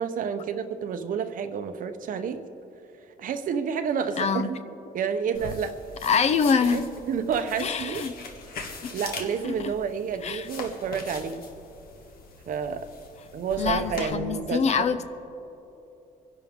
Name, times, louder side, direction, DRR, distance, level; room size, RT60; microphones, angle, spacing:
voice 1, 0.0-2.4 3.2-4.6 4.9-5.8 6.7-8.0 8.9-11.4 12.5-12.9 13.3-15.0, right 6 dB, 55° right, 8 dB, 0.9 m, -29 dB
voice 2, 4.2-4.5 6.0-6.8 7.6-8.1 8.8-8.9 9.5-9.7 10.2-10.5 13.6-15.0, left 6 dB, 40° left, 12 dB, 0.6 m, -25 dB
sound 1, 5.3-14.1, left 3 dB, 60° left, 1.6 m, -41 dB
26.5 x 11.0 x 3.7 m, 2.9 s
cardioid pair, 170°, 17 cm